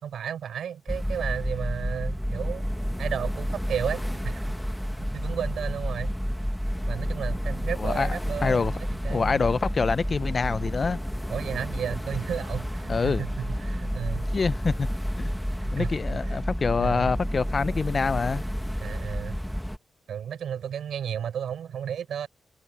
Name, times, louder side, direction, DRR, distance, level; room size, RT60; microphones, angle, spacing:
voice 1, 0.0-2.7 3.0-4.5 5.0-6.2 6.9-9.4 11.3-14.3 15.5-15.9 16.2-17.1 18.8-19.4 20.1-22.3, right 8 dB, 90° right, 4.2 m, -33 dB
sound 1, 0.9-19.8, equal, ahead, 1.6 m, -30 dB
voice 2, 7.8-8.7 9.1-11.0 12.9-13.2 14.3-14.9 15.7-18.4, left 4 dB, 40° left, 0.6 m, -26 dB
wide cardioid pair, 130°, 0 cm